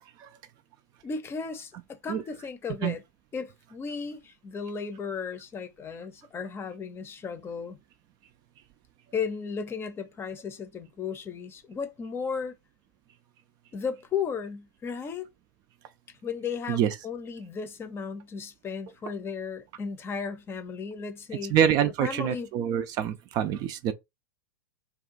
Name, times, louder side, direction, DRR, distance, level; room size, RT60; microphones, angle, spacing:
voice 1, 1.0-3.0 3.3-7.8 9.1-12.6 13.7-15.3 16.2-21.6 22.0-22.5, left 6 dB, 20° left, 0.7 m, -35 dB
voice 2, 21.5-23.9, right 9 dB, 40° right, 0.5 m, -26 dB
2.6 x 2.3 x 3.9 m
hypercardioid pair, 105°, 11 cm